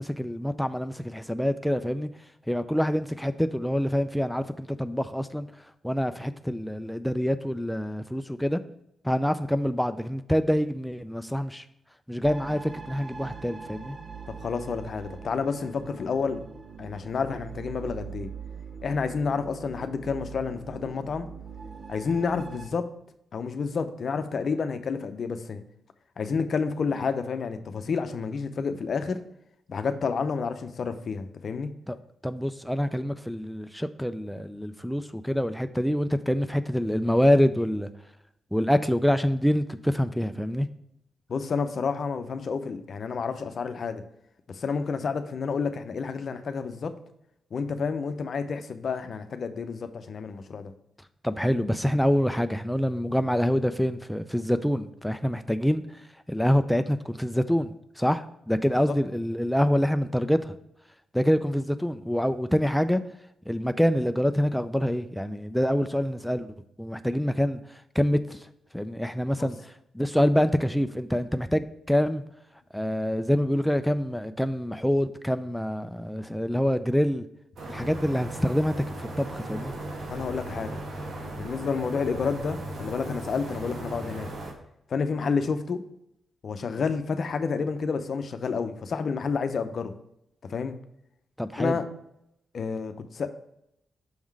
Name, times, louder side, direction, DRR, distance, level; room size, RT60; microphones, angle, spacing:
voice 1, 0.0-2.1 2.5-5.5 5.8-8.6 9.0-11.6 12.1-14.0 31.9-32.0 32.2-37.9 38.5-40.7 51.2-55.8 56.3-60.5 61.1-63.0 63.5-68.4 68.7-69.6 69.9-72.2 72.7-77.2 77.7-78.8 79.2-79.7 91.4-91.7, equal, 5° left, 0.4 m, -26 dB
sound 1, 12.2-22.7, right 5 dB, 45° right, 0.7 m, -42 dB
voice 2, 14.3-16.4 16.8-18.3 18.8-21.3 21.9-22.9 23.3-25.6 26.2-29.2 29.7-31.7 41.3-44.0 44.5-46.9 47.5-50.7 58.9-59.0 69.4-69.5 80.1-80.8 81.4-84.3 84.9-85.8 86.4-89.9 90.5-90.7 91.6-91.8 92.5-93.3, left 5 dB, 60° left, 0.6 m, -30 dB
sound 2, 77.6-84.5, right 1 dB, 70° right, 1.3 m, -37 dB
6.3 x 3.7 x 4.6 m
supercardioid pair, 50°, 0 cm